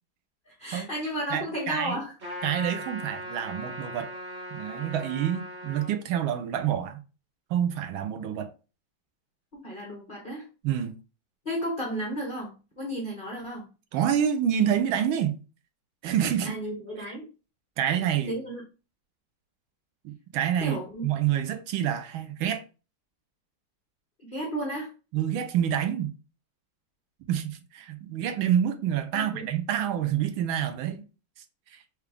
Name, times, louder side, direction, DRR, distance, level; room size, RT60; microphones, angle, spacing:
voice 1, 0.5-2.1 9.5-10.5 11.4-13.7 16.4-17.3 18.3-18.6 20.6-21.1 24.2-24.9 29.1-29.4, equal, 80° left, 0.4 m, -33 dB
voice 2, 1.3-2.0 2.4-4.1 4.5-7.0 7.5-8.5 10.6-10.9 13.9-15.4 16.0-16.6 17.1-17.2 17.8-18.4 20.0-22.6 25.1-26.1 27.3-31.0 31.7-31.8, right 9 dB, 75° right, 1.3 m, -27 dB
Trumpet, 2.2-5.9, equal, 35° right, 1.1 m, -39 dB
4.8 x 2.3 x 3.3 m
omnidirectional pair, 2.3 m